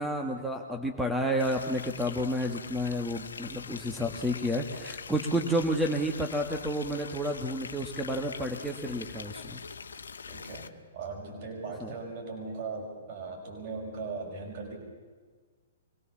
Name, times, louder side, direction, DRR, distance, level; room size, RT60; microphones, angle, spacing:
voice 1, 0.0-9.6 11.8-11.9, equal, 5° right, 3 dB, 1.5 m, -30 dB
sound 1, 1.4-10.7, left 5 dB, 85° left, 1.0 m, -43 dB
voice 2, 10.3-14.8, right 4 dB, 50° right, 1 dB, 5.8 m, -39 dB
24.5 x 18.0 x 7.2 m, 1.5 s
hypercardioid pair, 130°, 0 cm